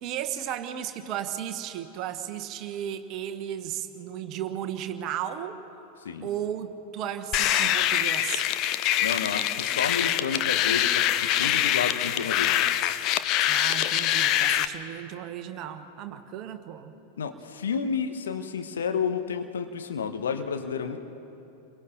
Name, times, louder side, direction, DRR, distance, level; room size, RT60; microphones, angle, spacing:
voice 1, 0.0-5.6 6.2-8.5 13.5-16.9, right 10 dB, 40° right, 8 dB, 1.2 m, -34 dB
sound 1, 7.3-14.6, left 12 dB, 40° left, 0.7 m, -24 dB
voice 2, 9.0-12.6 17.2-21.0, left 6 dB, 65° left, 7 dB, 1.2 m, -31 dB
29.0 x 23.0 x 4.0 m, 2.9 s
figure-of-eight pair, 90°, 0 cm